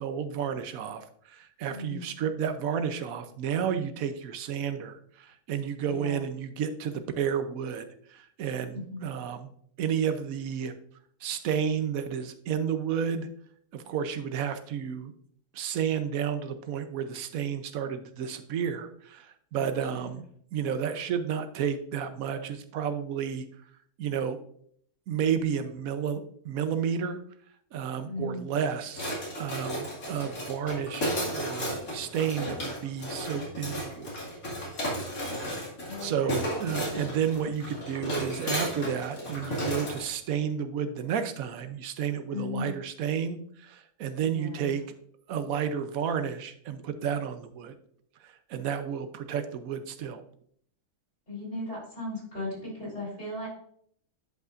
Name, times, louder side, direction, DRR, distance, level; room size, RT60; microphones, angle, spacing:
voice 1, 0.0-9.5 9.8-10.7 11.2-13.3 13.7-15.1 15.5-20.2 20.5-23.4 24.0-24.4 25.1-27.2 27.7-29.0 29.3-34.2 34.7-34.8 36.0-44.8 45.3-47.7 48.2-50.2, right 8 dB, 70° right, 10 dB, 1.1 m, -31 dB
voice 2, 1.6-2.1 5.8-6.2 8.7-9.1 19.5-20.2 28.0-28.6 35.8-36.3 42.3-42.7 44.2-44.8 51.3-53.5, left 2 dB, 45° left, -5 dB, 3.8 m, -37 dB
sound 1, 28.9-40.0, equal, 70° left, 2.7 m, -34 dB
10.5 x 5.3 x 2.5 m, 0.64 s
omnidirectional pair, 1.6 m